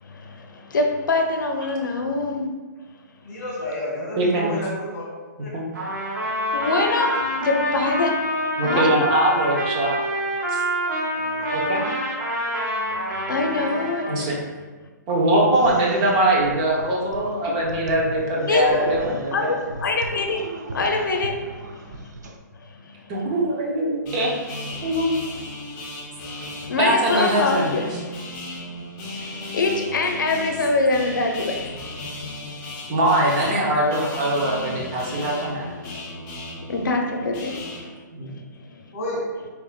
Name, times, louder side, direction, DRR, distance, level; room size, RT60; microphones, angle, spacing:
voice 1, 0.0-2.5 6.5-8.1 8.5-8.9 12.8-14.3 18.4-18.9 19.3-20.4 20.7-22.0 22.8-23.0 26.2-27.8 29.1-31.7 36.7-37.9 38.6-38.8, left 3 dB, 85° left, 3 dB, 0.6 m, -24 dB
voice 2, 3.2-5.1 5.4-5.5 11.1-11.6 38.9-39.2, left 1 dB, 45° left, -5 dB, 1.5 m, -31 dB
voice 3, 4.2-4.5 5.5-5.6 8.6-10.0 10.5-10.6 11.5-11.8 14.1-14.4 15.1-19.5 23.1-24.3 24.8-25.2 26.8-27.9 32.9-35.7 38.1-38.3, right 1 dB, 20° right, -3 dB, 0.6 m, -22 dB
Trumpet, 5.7-14.2, equal, 90° right, 1.3 m, -26 dB
sound 1, 15.5-22.4, right 2 dB, 65° right, 0.5 m, -36 dB
sound 2, 24.1-37.8, left 1 dB, 20° left, 0.7 m, -35 dB
4.3 x 3.5 x 2.3 m, 1.3 s
hypercardioid pair, 170°, 10 cm